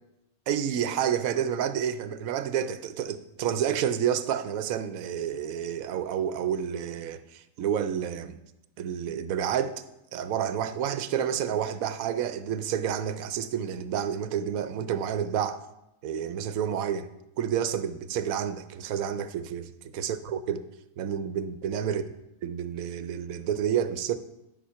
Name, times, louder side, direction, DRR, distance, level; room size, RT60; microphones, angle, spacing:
voice 1, 0.5-8.4 8.8-9.8 10.1-15.6 16.0-17.1 17.4-20.6 21.0-22.0 22.4-24.2, right 9 dB, 75° right, 1.1 m, -29 dB
11.5 x 5.7 x 5.7 m
omnidirectional pair, 1.5 m